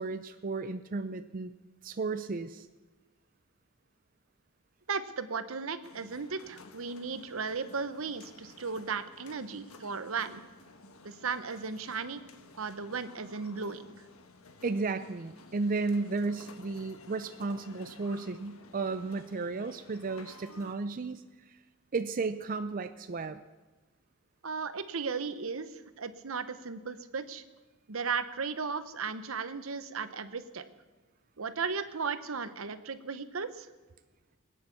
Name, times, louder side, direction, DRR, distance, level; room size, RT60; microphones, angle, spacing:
voice 1, 0.0-1.5 1.8-2.7 14.6-21.6 21.9-23.4, right 3 dB, 40° right, 10 dB, 0.5 m, -34 dB
voice 2, 4.9-10.4 11.0-12.2 12.6-13.9 24.4-27.4 27.9-30.6 31.4-33.7, right 5 dB, 75° right, 12 dB, 0.9 m, -36 dB
sound 1, 5.8-20.7, left 3 dB, 90° left, 1.3 m, -54 dB
21.0 x 9.5 x 7.0 m, 1.3 s
head